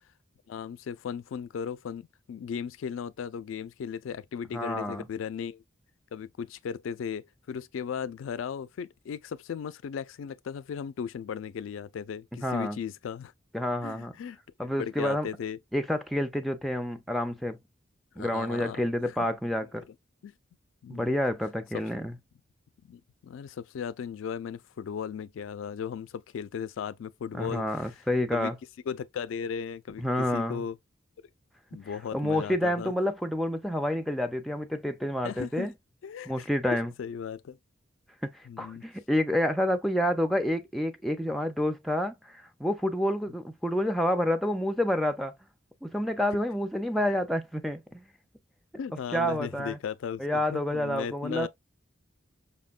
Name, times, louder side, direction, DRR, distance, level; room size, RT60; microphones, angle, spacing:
voice 1, 0.5-5.6 6.1-13.3 13.8-14.4 14.8-15.6 18.2-19.3 20.2-20.3 20.8-21.1 22.8-27.9 28.3-28.5 28.9-30.8 31.7-32.9 35.2-35.7 36.0-37.6 38.5-38.8 48.8-51.5, left 7 dB, 85° left, 0.3 m, -36 dB
voice 2, 4.5-5.0 12.4-12.8 13.5-14.1 14.6-15.3 15.7-17.6 18.2-19.8 20.9-22.2 27.3-28.6 30.0-30.6 32.1-35.7 36.3-36.9 38.2-45.3 45.8-48.0 49.1-49.8 50.2-51.5, left 1 dB, ahead, 0.4 m, -29 dB
5.6 x 2.1 x 2.3 m
head